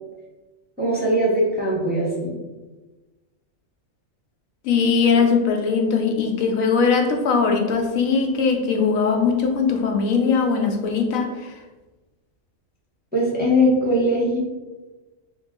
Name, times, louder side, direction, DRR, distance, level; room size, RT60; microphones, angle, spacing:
voice 1, 0.8-2.4 13.1-14.4, equal, 10° right, -6 dB, 0.6 m, -20 dB
voice 2, 4.6-11.5, left 5 dB, 85° left, 3 dB, 1.0 m, -20 dB
3.0 x 2.9 x 3.6 m, 1.2 s
omnidirectional pair, 1.4 m